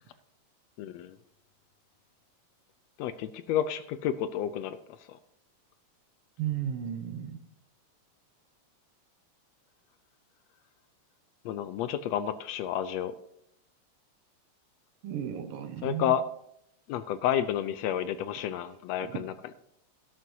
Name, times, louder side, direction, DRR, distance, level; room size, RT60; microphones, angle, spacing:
voice 1, 0.8-1.2 3.0-4.8 5.1-5.2 11.4-13.1 15.8-16.2 16.9-19.3, left 10 dB, 80° left, 1.6 m, -30 dB
voice 2, 6.4-7.4 15.0-16.1 19.0-19.2, right 9 dB, 65° right, 1.5 m, -34 dB
12.5 x 12.0 x 2.8 m
omnidirectional pair, 3.3 m